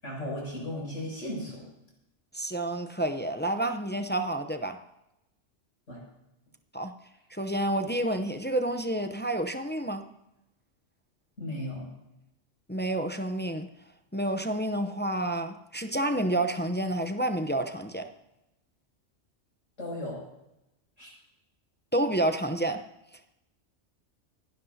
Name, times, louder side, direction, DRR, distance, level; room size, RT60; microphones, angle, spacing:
voice 1, 0.0-1.6 5.9-6.0 11.4-11.8 19.8-20.2 21.0-21.1, left 1 dB, 80° left, -4 dB, 7.4 m, -35 dB
voice 2, 2.3-4.8 6.7-6.9 7.3-10.0 12.7-13.7 14.1-18.1 21.9-22.8, right 1 dB, 15° left, 7 dB, 0.4 m, -29 dB
28.0 x 11.5 x 2.8 m, 0.89 s
omnidirectional pair, 1.3 m